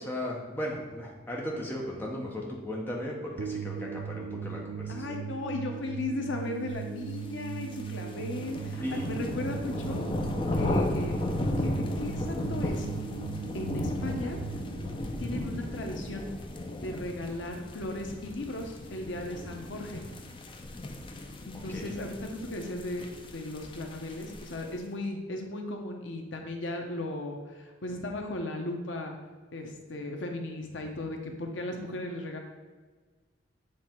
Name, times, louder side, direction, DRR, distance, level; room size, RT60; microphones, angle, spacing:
voice 1, 0.0-5.2 8.8-9.1 15.2-15.6 21.7-22.0, left 1 dB, 10° left, -2 dB, 1.0 m, -36 dB
sound 1, 3.4-16.5, right 7 dB, 85° right, 0.4 m, -39 dB
voice 2, 4.9-10.1 10.5-12.9 13.5-14.4 15.2-16.3 16.8-20.0 21.5-29.2 29.5-32.4, left 2 dB, 75° left, 3 dB, 0.8 m, -36 dB
sound 2, 7.3-24.8, left 1 dB, 25° left, 0.5 m, -35 dB
7.7 x 3.2 x 4.5 m, 1.4 s
head